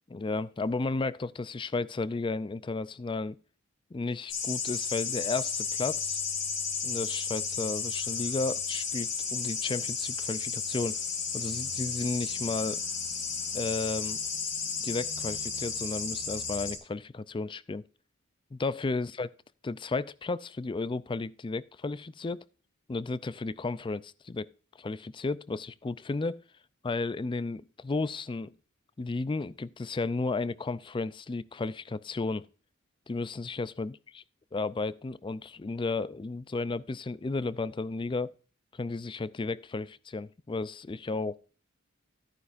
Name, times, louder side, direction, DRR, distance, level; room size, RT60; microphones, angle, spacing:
voice 1, 0.1-3.4 3.9-6.2 6.8-11.0 11.3-12.8 13.5-14.2 14.8-17.8 18.5-19.3 19.6-22.4 22.9-24.5 24.8-26.4 26.8-28.5 29.0-32.5 33.1-34.0 34.5-38.3 38.7-41.4, left 3 dB, 25° left, 0.4 m, -33 dB
sound 1, 4.3-16.8, left 5 dB, 65° left, 2.6 m, -33 dB
13.5 x 9.7 x 2.5 m
head